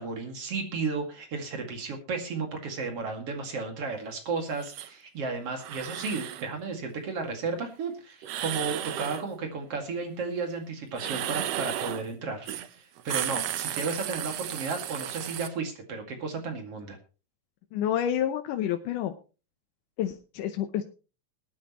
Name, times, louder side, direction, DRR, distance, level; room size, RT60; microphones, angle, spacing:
voice 1, 0.0-17.0, right 4 dB, 50° right, 4 dB, 3.0 m, -33 dB
sound 1, 4.6-4.9 5.5-6.5 8.2-9.3 10.9-12.1 12.5-12.7 13.0-15.5, right 12 dB, 70° right, 1.7 m, -34 dB
voice 2, 17.7-19.1 20.0-20.8, left 10 dB, 90° left, 6 dB, 2.4 m, -29 dB
21.0 x 9.6 x 3.0 m, 0.33 s
omnidirectional pair, 3.5 m